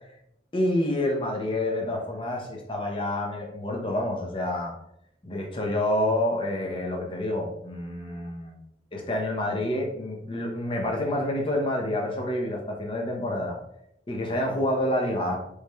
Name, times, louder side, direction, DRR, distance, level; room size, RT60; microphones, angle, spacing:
voice 1, 0.5-4.7 5.2-8.6 8.9-13.6 14.1-15.4, left 1 dB, 30° left, 1 dB, 0.7 m, -28 dB
4.6 x 3.2 x 2.3 m, 0.78 s
head